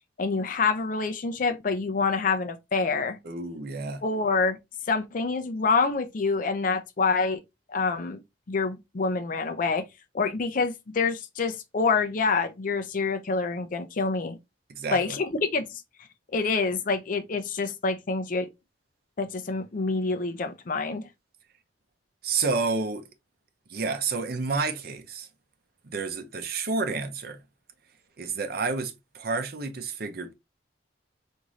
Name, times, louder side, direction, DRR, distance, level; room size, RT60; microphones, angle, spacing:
voice 1, 0.2-3.2 4.0-4.6 4.9-7.4 7.7-8.2 8.5-9.9 10.1-14.4 14.9-15.8 16.3-18.5 19.2-21.0, left 4 dB, 45° left, 0.5 m, -26 dB
voice 2, 3.2-4.0 14.7-15.2 22.2-23.1 23.7-25.3 25.8-27.4 28.2-30.3, right 4 dB, 55° right, 0.7 m, -30 dB
3.6 x 2.6 x 3.0 m
head